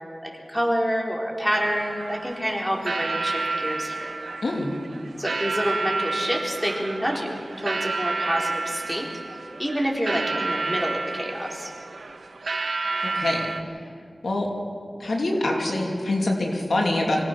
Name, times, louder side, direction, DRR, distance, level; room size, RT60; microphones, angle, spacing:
voice 1, 0.2-4.1 5.2-7.4 7.6-9.1 9.6-11.7, equal, 5° left, -1 dB, 4.2 m, -27 dB
sound 1, 1.5-13.6, right 3 dB, 85° right, 1.1 m, -30 dB
voice 2, 13.0-13.4 14.2-14.5 15.0-17.2, left 2 dB, 90° left, 0 dB, 2.7 m, -24 dB
25.0 x 17.5 x 6.1 m, 2.4 s
wide cardioid pair, 50°, 0 cm